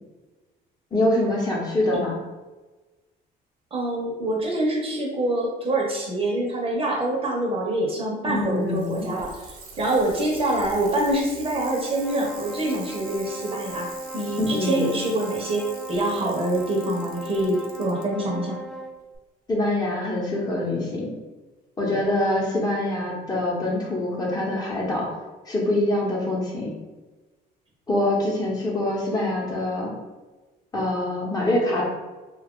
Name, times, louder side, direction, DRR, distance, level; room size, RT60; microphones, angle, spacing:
voice 1, 0.9-2.2 8.2-9.1 14.4-14.9 19.5-21.1 21.8-25.1 25.5-26.7 27.9-29.9 30.7-31.8, left 1 dB, 25° left, -4 dB, 1.0 m, -24 dB
voice 2, 3.7-9.3 9.8-13.9 14.1-18.6, right 1 dB, 35° right, -2 dB, 0.8 m, -25 dB
Bicycle, 8.4-18.0 19.1-19.2, right 4 dB, 60° right, 0.8 m, -44 dB
sound 1, 11.6-19.0, right 1 dB, ahead, 0.3 m, -38 dB
2.7 x 2.4 x 3.6 m, 1.2 s
cardioid pair, 110°, 17 cm